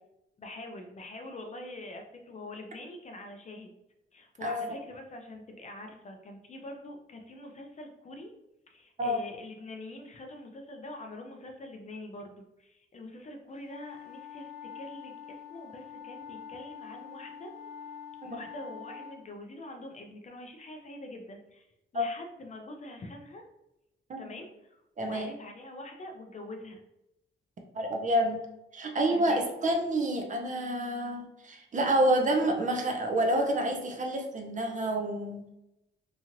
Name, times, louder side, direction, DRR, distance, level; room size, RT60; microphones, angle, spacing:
voice 1, 0.4-3.7 4.1-8.3 8.7-17.6 18.2-21.7 21.9-23.5 24.2-26.8 29.1-29.5, left 1 dB, 35° left, 3 dB, 0.4 m, -44 dB
voice 2, 4.4-4.7 9.0-9.2 18.2-18.4 21.9-22.0 24.1-24.2 25.0-25.3 27.7-28.4 28.7-35.4, right 1 dB, 35° right, 3 dB, 0.4 m, -28 dB
sound 1, 13.7-19.2, left 7 dB, 80° left, 1.0 m, -45 dB
2.9 x 2.8 x 2.4 m, 0.87 s
wide cardioid pair, 165°, 21 cm